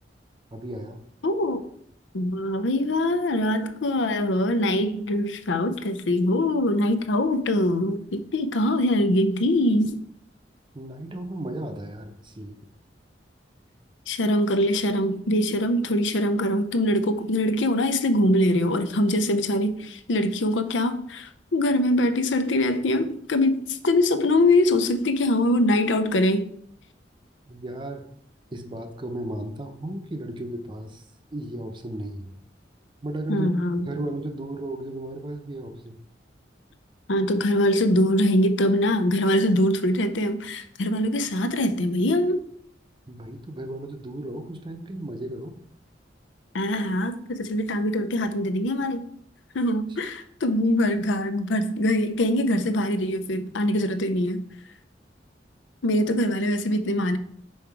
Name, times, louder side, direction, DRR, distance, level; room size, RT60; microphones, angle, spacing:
voice 1, 0.5-1.0 10.7-12.5 27.5-28.1 28.5-31.1 31.3-32.4 33.0-33.5 33.8-36.0 43.1-45.6, right 1 dB, 25° right, 6 dB, 0.6 m, -34 dB
voice 2, 1.2-1.6 2.1-10.0 14.1-26.5 33.3-33.9 37.1-42.4 46.5-49.0 49.5-54.4 55.8-57.2, left 1 dB, 85° left, 10 dB, 0.6 m, -23 dB
5.5 x 4.6 x 4.7 m, 0.67 s
head